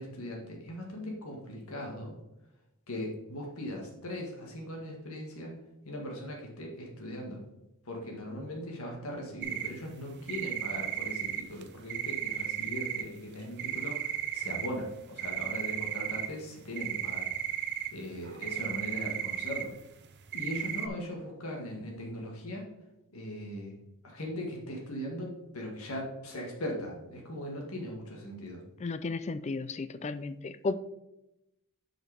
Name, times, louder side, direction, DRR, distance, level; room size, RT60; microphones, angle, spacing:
voice 1, 0.0-2.2 2.9-5.5 5.8-7.4 7.9-17.3 17.9-19.7 20.3-22.7 23.1-23.7 24.0-28.6, left 1 dB, 70° left, 0 dB, 1.8 m, -39 dB
sound 1, 9.4-9.8 10.3-13.1 13.4-14.8 15.2-19.7 20.1-20.9, right 10 dB, 50° right, 0.6 m, -35 dB
voice 2, 28.8-30.8, left 3 dB, 30° left, 13 dB, 0.3 m, -34 dB
7.4 x 5.0 x 4.9 m, 0.89 s
head